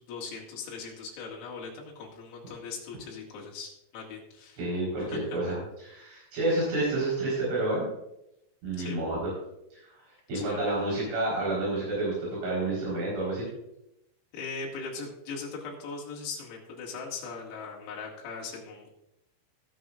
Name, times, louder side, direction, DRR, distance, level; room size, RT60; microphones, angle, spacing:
voice 1, 0.0-4.6 5.0-5.4 8.8-9.0 10.3-10.7 14.3-18.9, left 4 dB, 85° left, -3 dB, 4.9 m, -40 dB
voice 2, 4.6-7.9 8.6-9.3 9.7-9.9 10.3-13.5, right 2 dB, 65° right, -7 dB, 6.8 m, -29 dB
21.0 x 8.4 x 2.5 m, 0.86 s
omnidirectional pair, 5.9 m